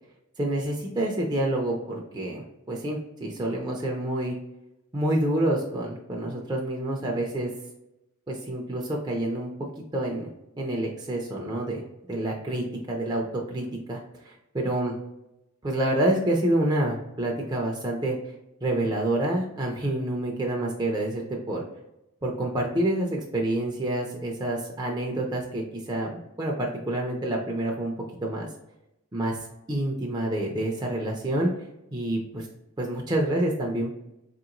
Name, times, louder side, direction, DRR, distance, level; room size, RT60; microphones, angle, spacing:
voice 1, 0.4-4.3 4.9-7.5 8.3-10.3 10.6-11.8 12.1-14.3 14.6-14.9 15.6-18.1 18.6-21.6 22.2-27.9 28.2-28.5 29.1-29.4 29.7-31.5 31.9-32.2 32.8-33.9, right 1 dB, 20° right, -2 dB, 0.4 m, -28 dB
4.5 x 2.9 x 2.5 m, 0.89 s
head